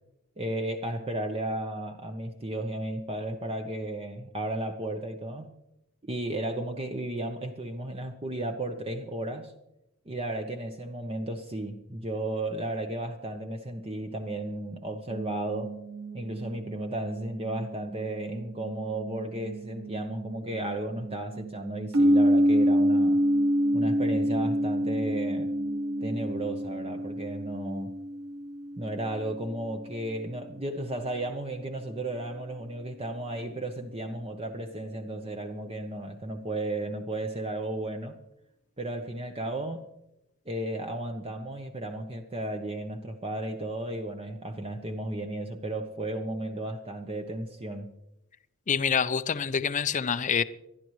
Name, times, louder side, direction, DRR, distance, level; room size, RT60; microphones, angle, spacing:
voice 1, 0.4-5.5 6.0-9.5 10.1-15.7 16.1-23.2 23.7-25.5 26.0-28.0 28.8-38.2 38.8-39.9 40.5-47.9, right 1 dB, 25° right, 0.9 m, -34 dB
sound 1, 15.1-28.0, right 5 dB, 50° right, 2.6 m, -42 dB
sound 2, 21.9-29.7, equal, 80° right, 1.2 m, -26 dB
voice 2, 48.7-50.4, left 7 dB, 35° left, 0.5 m, -26 dB
26.0 x 11.5 x 3.2 m
head